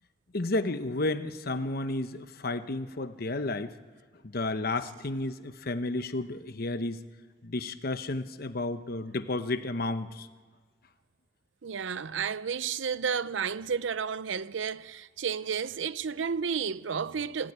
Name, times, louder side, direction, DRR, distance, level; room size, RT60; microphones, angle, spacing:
voice 1, 0.3-3.7 4.2-7.0 7.4-10.3, left 2 dB, 55° left, 1.0 m, -32 dB
voice 2, 11.6-17.5, right 6 dB, 80° right, 0.6 m, -32 dB
26.0 x 15.0 x 9.6 m
head